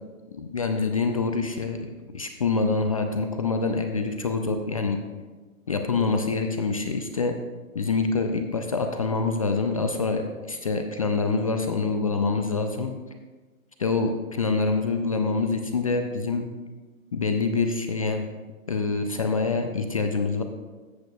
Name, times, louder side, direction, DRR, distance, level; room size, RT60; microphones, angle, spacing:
voice 1, 0.3-5.0 5.7-7.3 7.7-12.9 13.8-16.5 17.1-18.2 18.7-20.4, left 4 dB, 30° left, 6 dB, 0.3 m, -26 dB
13.5 x 8.1 x 2.3 m, 1.3 s
hypercardioid pair, 130°, 42 cm